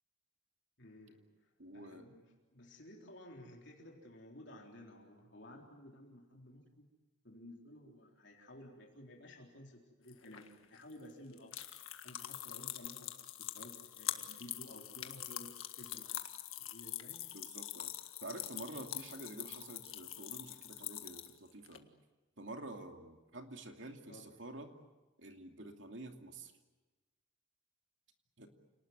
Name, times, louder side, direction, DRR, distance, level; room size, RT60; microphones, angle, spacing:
voice 1, 0.8-6.9 7.2-11.5 12.0-13.1 13.4-16.2 16.6-17.3 24.1-24.3, left 1 dB, 60° left, 0 dB, 3.9 m, -54 dB
voice 2, 1.6-2.1 17.3-17.9 18.2-21.9 22.4-24.7 25.2-26.5 28.4-28.5, right 2 dB, 65° right, 4 dB, 2.7 m, -48 dB
sound 1, 10.1-21.8, left 13 dB, 85° left, 1.7 m, -44 dB
29.0 x 19.5 x 9.5 m, 1.2 s
head